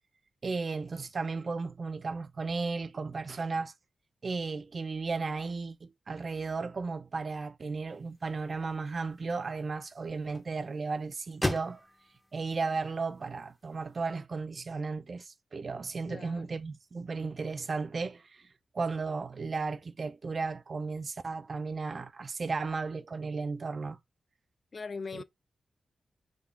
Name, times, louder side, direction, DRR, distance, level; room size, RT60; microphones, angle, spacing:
voice 1, 0.4-3.7 4.2-11.8 12.3-18.4 18.7-24.0 25.1-25.2, right 4 dB, 50° right, 0.4 m, -35 dB
sound 1, 7.9-14.0, left 1 dB, 10° left, 0.6 m, -41 dB
voice 2, 16.1-16.6 24.7-25.2, left 4 dB, 45° left, 0.3 m, -40 dB
3.7 x 2.4 x 3.4 m
cardioid pair, 90°, 0 cm